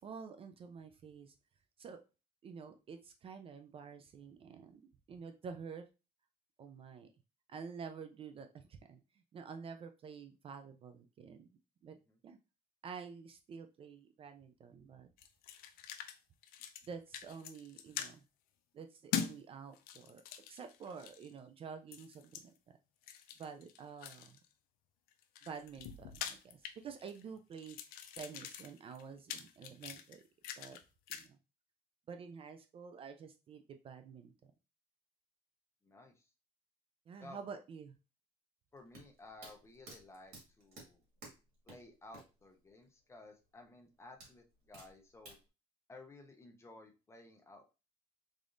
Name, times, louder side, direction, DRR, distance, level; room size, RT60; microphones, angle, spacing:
voice 1, 0.0-1.3 1.8-2.0 2.4-5.8 6.6-7.1 7.5-9.0 9.3-11.5 11.8-12.0 12.2-12.4 12.8-15.1 16.8-18.2 18.7-20.2 20.5-22.5 23.4-24.4 25.4-27.8 28.2-30.2 30.6-30.8 31.1-31.4 32.1-34.5 37.1-37.9, right 6 dB, 40° right, 7 dB, 0.4 m, -49 dB
sound 1, 15.2-16.2 16.4-16.9 17.1-18.1 19.1-19.3 19.7-21.3 21.9-22.4 23.0-24.4 25.1-27.2 27.5-30.8 31.1-31.3, left 9 dB, 80° left, 0.5 m, -43 dB
voice 2, 35.8-36.3 37.2-37.4 38.7-41.0 41.7-45.4 45.9-47.6, left 2 dB, 20° left, 3 dB, 0.7 m, -55 dB
sound 2, 38.8-42.4 42.7-42.8 44.2-45.4, right 2 dB, 85° right, 1.9 m, -53 dB
3.6 x 3.5 x 2.5 m, 0.30 s
cardioid pair, 125°, 15 cm